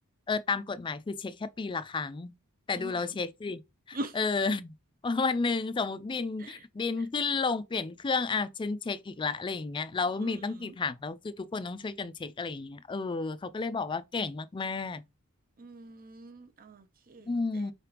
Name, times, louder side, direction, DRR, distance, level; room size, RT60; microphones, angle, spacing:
voice 1, 0.3-2.3 2.7-3.6 3.9-4.7 5.0-15.0 17.3-17.7, left 4 dB, 20° left, 0.4 m, -32 dB
voice 2, 15.6-17.3, right 1 dB, 40° right, 0.6 m, -42 dB
4.7 x 3.4 x 2.9 m
head